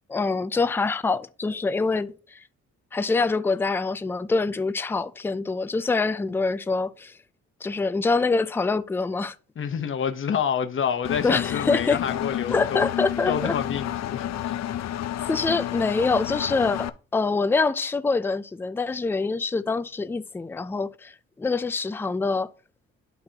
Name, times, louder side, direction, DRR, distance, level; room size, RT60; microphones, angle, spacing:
voice 1, 0.1-2.4 2.9-7.1 7.6-9.4 11.2-12.0 12.5-13.6 15.2-22.5, left 4 dB, 10° left, 0.4 m, -25 dB
voice 2, 9.6-12.9 13.3-14.6, left 7 dB, 40° left, 0.9 m, -28 dB
Engine, 11.0-16.9, left 11 dB, 60° left, 0.6 m, -30 dB
11.5 x 4.0 x 2.9 m
cardioid pair, 90°, 30 cm